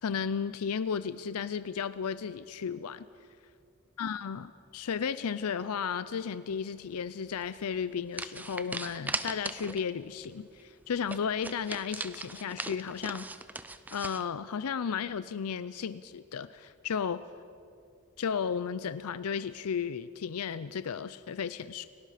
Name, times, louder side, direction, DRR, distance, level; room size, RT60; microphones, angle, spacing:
voice 1, 0.0-3.0 4.0-13.3 13.9-17.2 18.2-21.9, left 6 dB, 85° left, 14 dB, 0.5 m, -34 dB
sound 1, 7.4-7.6 8.1-9.9 10.2-10.3 10.6-10.7 11.1-14.2, right 2 dB, 5° right, 0.4 m, -39 dB
29.5 x 17.5 x 5.0 m, 2.4 s
head